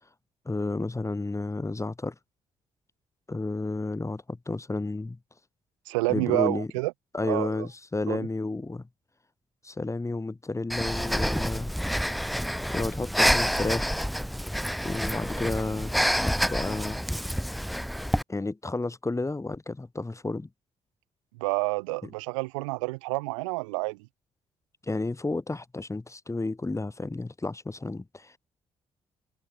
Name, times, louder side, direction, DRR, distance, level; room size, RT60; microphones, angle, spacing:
voice 1, 0.5-2.2 3.3-5.2 6.1-6.7 7.1-8.9 9.6-11.7 12.7-14.0 14.8-15.9 16.2-17.1 18.3-20.5 22.0-22.1 24.8-28.4, left 2 dB, 15° left, 2.1 m, -31 dB
voice 2, 5.9-6.9 7.2-7.7 8.1-8.3 21.3-24.1, right 25 dB, 70° right, 2.2 m, -29 dB
Breathing, 10.7-18.2, equal, ahead, 0.6 m, -28 dB
figure-of-eight pair, 40°, 17 cm